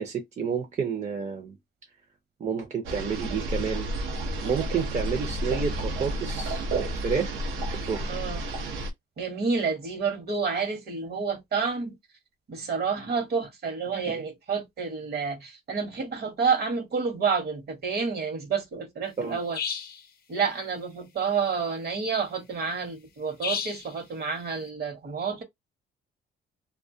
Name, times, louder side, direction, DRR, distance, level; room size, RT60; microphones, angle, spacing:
voice 1, 0.0-1.5 2.4-3.9 4.4-7.4 7.8-8.1 14.1-14.2 19.2-19.4, right 6 dB, 35° right, 0.6 m, -30 dB
sound 1, 2.8-8.9, right 1 dB, 85° right, 0.7 m, -31 dB
voice 2, 8.1-8.4 9.2-12.0 12.5-19.6 20.3-25.4, right 5 dB, 55° right, 1.1 m, -29 dB
sound 2, 19.5-20.0 23.4-23.9, left 7 dB, 50° left, 0.5 m, -31 dB
2.3 x 2.2 x 2.6 m
cardioid pair, 90°, 20 cm